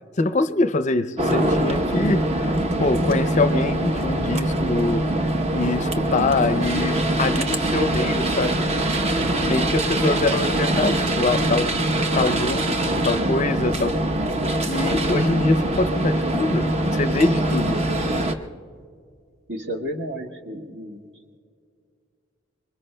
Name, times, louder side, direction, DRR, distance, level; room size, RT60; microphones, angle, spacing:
voice 1, 0.2-2.5 2.8-5.3 5.5-8.6 9.4-11.7 12.2-14.0 14.6-17.8, left 3 dB, 40° left, 11 dB, 0.5 m, -24 dB
sound 1, 1.2-18.3, right 1 dB, 35° right, 0.8 m, -23 dB
voice 2, 19.5-21.1, equal, 70° right, 1 dB, 1.8 m, -32 dB
26.0 x 23.5 x 2.2 m, 2.2 s
head